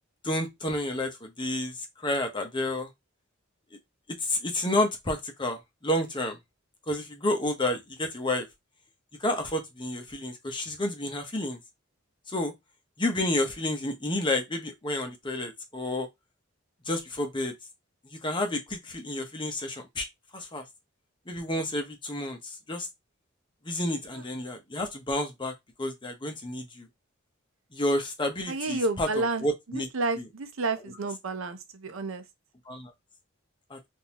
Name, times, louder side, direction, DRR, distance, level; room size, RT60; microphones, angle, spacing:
voice 1, 0.2-2.9 4.2-6.4 6.9-8.4 9.2-11.6 12.3-12.5 13.0-16.1 16.9-17.5 18.0-20.1 20.3-20.6 21.3-22.9 23.6-26.9 27.7-29.9 30.2-30.3 30.8-30.9 32.7-32.9 33.7-33.8, left 1 dB, 25° left, 0.8 m, -30 dB
voice 2, 28.5-32.2, right 3 dB, 75° right, 0.7 m, -31 dB
3.8 x 2.6 x 2.9 m
head